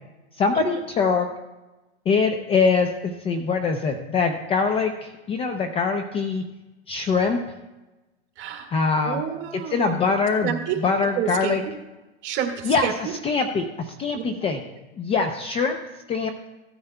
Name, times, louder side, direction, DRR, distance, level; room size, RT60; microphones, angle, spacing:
voice 1, 0.4-1.3 2.1-6.4 6.9-7.4 8.7-9.2 9.5-11.6 12.6-14.6 15.0-15.8 16.1-16.3, left 4 dB, 20° left, 6 dB, 0.5 m, -23 dB
voice 2, 8.4-8.7 9.0-9.8 10.4-10.8 11.2-11.6 12.2-13.1 14.1-14.2, right 10 dB, 35° right, 2 dB, 1.8 m, -28 dB
15.5 x 9.4 x 2.2 m, 1.1 s
hypercardioid pair, 135°, 33 cm